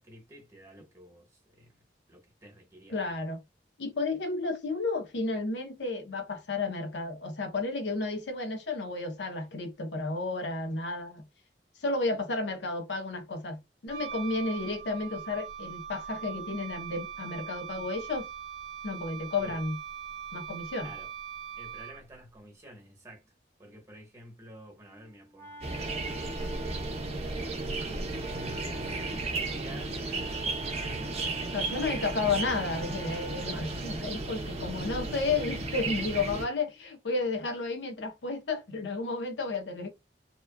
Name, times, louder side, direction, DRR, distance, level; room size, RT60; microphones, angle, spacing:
voice 1, 0.0-1.7 2.1-3.2 19.4-19.6 20.8-21.1 21.6-23.3 23.6-26.8 27.8-30.0 30.6-32.1, equal, 15° right, 1.1 m, -51 dB
voice 2, 2.9-3.4 3.8-11.2 11.8-18.3 18.8-19.8 20.3-20.9 31.5-39.9, left 3 dB, 80° left, 0.7 m, -32 dB
Wind instrument woodwind instrument, 13.9-22.2, right 8 dB, 75° right, 0.5 m, -41 dB
Wind instrument woodwind instrument 2, 24.8-33.9, right 2 dB, 15° left, 0.5 m, -49 dB
sound 1, 25.6-36.5, right 2 dB, 35° right, 0.7 m, -34 dB
2.9 x 2.3 x 2.2 m
head